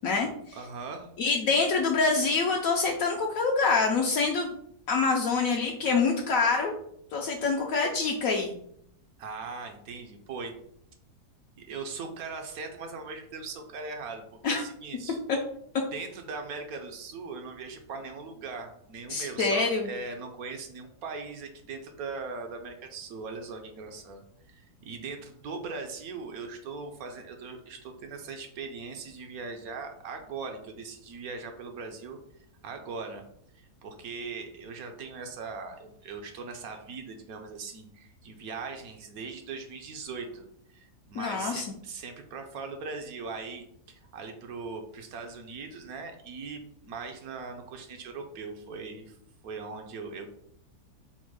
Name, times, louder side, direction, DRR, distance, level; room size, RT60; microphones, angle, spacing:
voice 1, 0.0-0.6 1.2-4.5 4.9-6.7 7.1-8.6 14.4-14.6 15.3-15.4 19.1-19.9 41.1-41.7, left 4 dB, 70° left, 1 dB, 0.9 m, -26 dB
voice 2, 0.5-1.1 9.2-10.5 11.6-15.2 15.9-24.2 24.5-32.2 32.6-33.2 33.5-40.4 40.7-49.1 49.4-50.3, right 4 dB, 70° right, 5 dB, 1.1 m, -40 dB
4.3 x 2.1 x 4.6 m, 0.70 s
omnidirectional pair, 1.7 m